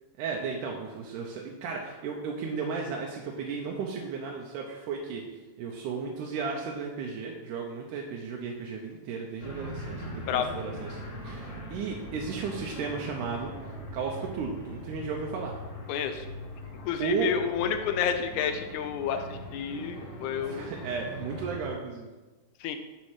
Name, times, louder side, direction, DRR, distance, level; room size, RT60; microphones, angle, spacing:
voice 1, 0.2-5.2 5.6-11.0 11.2-13.5 13.9-15.6 17.0-17.3 20.4-22.1, right 5 dB, 90° right, 0 dB, 2.2 m, -34 dB
sound 1, 9.4-21.6, equal, 25° left, 2.6 m, -41 dB
voice 2, 15.9-16.3 16.8-20.7 22.6-22.8, left 8 dB, 80° left, 7 dB, 2.1 m, -30 dB
10.0 x 4.1 x 4.8 m, 1.2 s
omnidirectional pair, 3.5 m